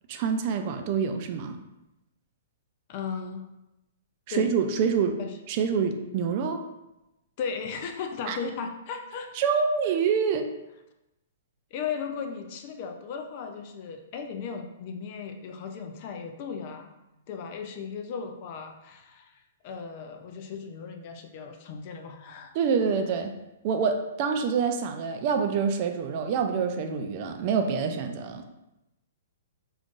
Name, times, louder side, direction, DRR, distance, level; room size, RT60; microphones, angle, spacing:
voice 1, 0.1-1.6 4.3-5.2 5.5-6.6 8.3-8.4 9.4-10.5 22.5-23.3 23.6-28.4, right 6 dB, 40° right, 6 dB, 0.3 m, -26 dB
voice 2, 2.9-3.5 4.3-4.5 5.2-5.3 7.4-9.5 11.7-16.9 17.3-22.6, left 6 dB, 40° left, 5 dB, 0.4 m, -36 dB
3.7 x 2.5 x 2.4 m, 0.92 s
hypercardioid pair, 150°, 0 cm